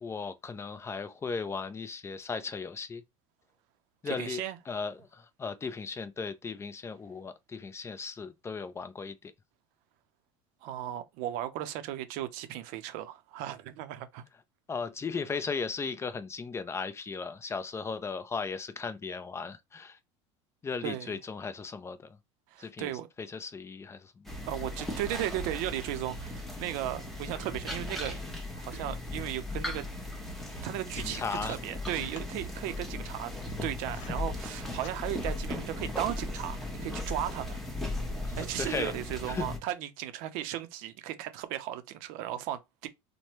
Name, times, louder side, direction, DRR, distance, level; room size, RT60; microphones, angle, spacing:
voice 1, 0.0-3.0 4.0-9.3 14.7-20.0 20.6-22.1 22.6-22.9 23.2-24.3 31.0-31.6 38.2-38.9 39.3-39.5, left 5 dB, 15° left, 0.5 m, -36 dB
voice 2, 4.1-4.6 10.6-14.3 20.8-21.2 22.5-23.1 24.5-28.1 28.6-29.8 30.6-33.3 33.6-37.6 38.4-42.9, right 13 dB, 65° right, 0.6 m, -36 dB
sound 1, 24.3-39.6, left 2 dB, ahead, 0.9 m, -37 dB
sound 2, 30.9-32.5 33.3-34.3 34.6-35.3, left 6 dB, 80° left, 0.9 m, -52 dB
3.1 x 2.1 x 3.0 m
supercardioid pair, 95°, 16 cm